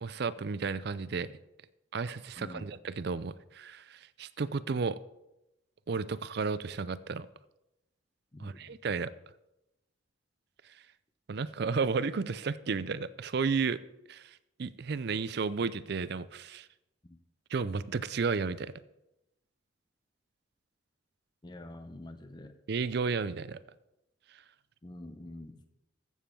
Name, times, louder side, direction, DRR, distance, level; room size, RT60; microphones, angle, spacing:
voice 1, 0.0-1.3 1.9-5.0 5.9-7.3 8.4-9.1 11.3-13.8 14.1-14.2 14.6-16.7 17.5-18.7 22.7-23.6, right 5 dB, 55° right, 16 dB, 0.4 m, -33 dB
voice 2, 2.4-2.7 8.3-8.8 17.1-17.2 21.4-22.5 24.8-25.6, left 1 dB, 20° left, 8 dB, 0.6 m, -46 dB
14.5 x 7.2 x 4.5 m, 0.91 s
head